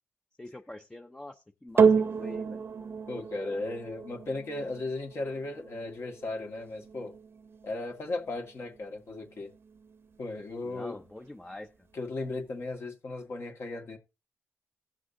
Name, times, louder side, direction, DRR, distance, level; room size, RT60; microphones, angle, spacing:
voice 1, 0.4-2.6 10.6-11.7, left 1 dB, 15° left, 0.7 m, -44 dB
sound 1, 1.8-10.3 11.1-11.2, right 6 dB, 55° right, 0.8 m, -31 dB
voice 2, 3.1-7.1 7.6-9.5 10.2-11.0 11.9-14.0, left 2 dB, 55° left, 1.9 m, -36 dB
16.5 x 6.1 x 2.7 m
cardioid pair, 70°, 5 cm